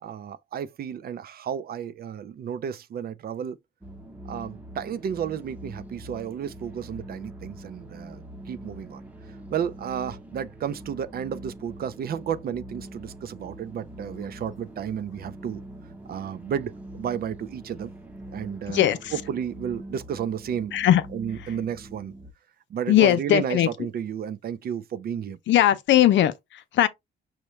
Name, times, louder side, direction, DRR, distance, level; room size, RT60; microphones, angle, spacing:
voice 1, 0.0-3.6 4.3-9.0 9.5-15.6 16.1-17.9 18.3-20.7 21.1-22.1 22.7-25.4, right 8 dB, 50° right, 0.4 m, -32 dB
sound 1, 3.8-22.3, right 1 dB, 5° right, 0.9 m, -43 dB
voice 2, 18.7-19.1 20.7-21.0 21.4-21.5 22.9-23.7 25.5-26.9, left 12 dB, 70° left, 0.5 m, -20 dB
5.6 x 2.2 x 3.1 m
cardioid pair, 90°, 20 cm